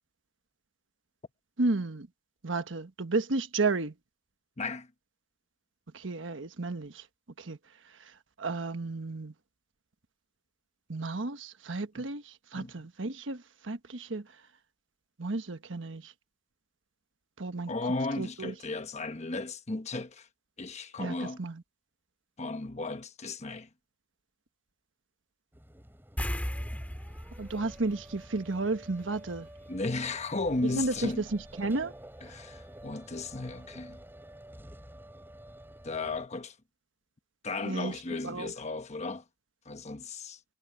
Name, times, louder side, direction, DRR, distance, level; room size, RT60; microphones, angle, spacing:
voice 1, 1.6-2.1 2.4-3.9 5.9-7.0 7.4-7.6 8.4-9.3 10.9-14.3 15.2-16.1 17.4-17.7 18.2-18.5 21.0-21.6 27.4-29.5 30.8-31.1 31.6-31.9 37.7-37.9 38.2-38.5, right 3 dB, 80° right, 1.3 m, -32 dB
voice 2, 4.6-4.9 12.0-12.1 12.5-12.9 17.7-20.3 20.6-21.4 22.4-23.7 29.7-31.3 32.2-34.0 35.8-36.6 37.4-39.3 39.6-40.4, left 3 dB, 35° left, 1.2 m, -35 dB
sound 1, 25.5-36.3, right 1 dB, 10° right, 5.1 m, -50 dB
sound 2, 26.2-29.0 29.3-29.4 32.3-32.4 32.8-32.9, equal, 10° left, 2.8 m, -37 dB
head